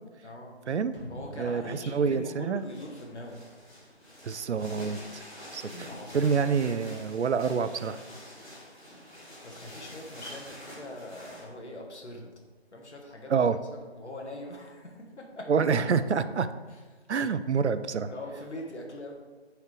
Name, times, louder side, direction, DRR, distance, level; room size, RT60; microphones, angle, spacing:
voice 1, 0.2-0.6 1.1-3.4 5.5-6.4 9.4-12.3 12.7-13.4 13.9-15.6 16.7-17.0 18.1-19.2, left 1 dB, 80° left, 0 dB, 1.5 m, -42 dB
sound 1, 0.9-3.7 4.1-4.2, equal, 50° left, 1.8 m, -47 dB
voice 2, 1.4-2.6 4.2-5.2 5.5-5.9 6.1-8.0 13.3-13.6 15.5-16.5 17.1-18.1, right 5 dB, 85° right, 13 dB, 0.5 m, -27 dB
sound 2, 2.5-11.4, equal, 5° left, 1.6 m, -47 dB
8.3 x 4.8 x 3.2 m, 1.3 s
figure-of-eight pair, 180°, 33 cm